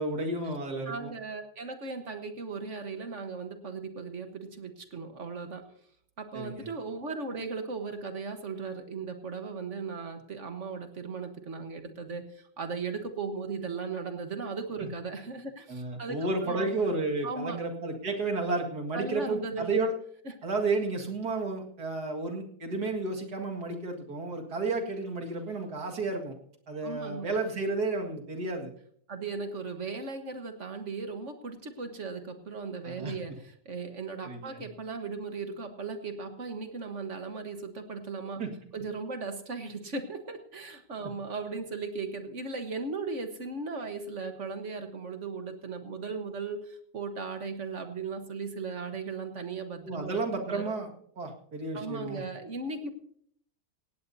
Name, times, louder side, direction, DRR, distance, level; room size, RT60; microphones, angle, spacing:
voice 1, 0.0-1.1 6.3-6.7 14.8-14.9 15.7-19.9 20.4-26.3 26.7-28.7 32.8-33.1 34.2-34.6 38.4-38.5 49.8-50.9 51.2-52.2, right 3 dB, 85° right, 2 dB, 2.5 m, -32 dB
voice 2, 0.8-5.7 6.2-16.7 17.2-17.6 18.9-19.8 20.2-20.3 26.8-27.3 29.1-38.4 38.7-50.2 50.5-50.7 51.7-52.9, right 4 dB, 50° right, 7 dB, 1.6 m, -37 dB
17.5 x 17.0 x 2.7 m, 0.63 s
omnidirectional pair, 1.7 m